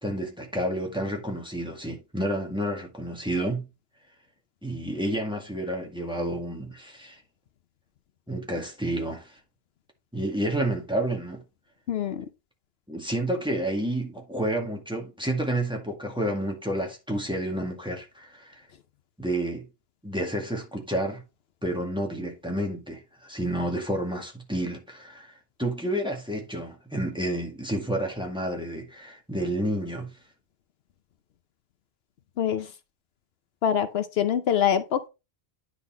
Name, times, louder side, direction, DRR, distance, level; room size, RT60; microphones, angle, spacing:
voice 1, 0.0-3.7 4.6-7.2 8.3-9.3 10.1-11.4 12.9-18.7 19.2-19.7 20.0-21.2 21.6-25.3 25.6-30.1, right 1 dB, 5° right, 1.8 m, -30 dB
voice 2, 11.9-12.3 32.4-32.7 33.6-35.1, left 9 dB, 75° left, 0.9 m, -24 dB
9.9 x 4.1 x 4.2 m
omnidirectional pair, 1.1 m